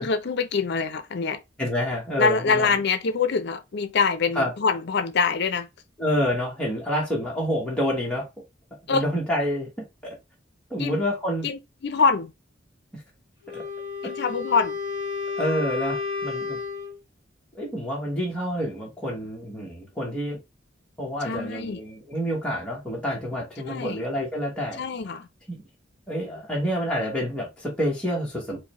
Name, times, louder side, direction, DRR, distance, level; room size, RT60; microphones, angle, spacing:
voice 1, 0.0-1.4 2.2-5.7 8.9-9.1 10.8-11.0 11.4-12.3 14.0-14.8 21.2-21.8 23.7-24.0 24.8-25.3, left 5 dB, 60° left, 0.5 m, -24 dB
voice 2, 1.6-2.7 4.4-4.5 6.0-8.3 8.9-9.7 10.0-10.1 10.7-11.5 13.5-13.6 14.0-14.1 15.4-16.6 17.5-20.4 21.0-24.8 25.5-25.6 26.1-28.6, equal, 5° left, 1.0 m, -28 dB
Wind instrument woodwind instrument, 13.4-17.0, left 4 dB, 20° right, 1.3 m, -31 dB
4.8 x 2.1 x 3.0 m
head